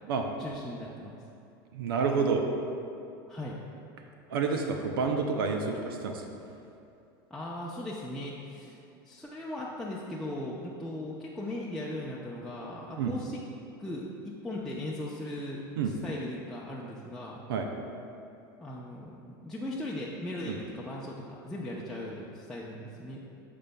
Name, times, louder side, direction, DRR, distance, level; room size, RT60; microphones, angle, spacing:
voice 1, 0.4-1.2 3.3-3.6 7.3-8.8 9.0-13.4 13.8-17.4 18.6-23.3, left 1 dB, 5° left, -6 dB, 0.6 m, -38 dB
voice 2, 1.7-2.5 4.3-6.2 13.0-13.2 15.8-15.9 17.5-17.7 20.5-20.6, right 5 dB, 90° right, 3 dB, 0.6 m, -29 dB
8.7 x 6.7 x 2.2 m, 2.7 s
supercardioid pair, 110°, 12 cm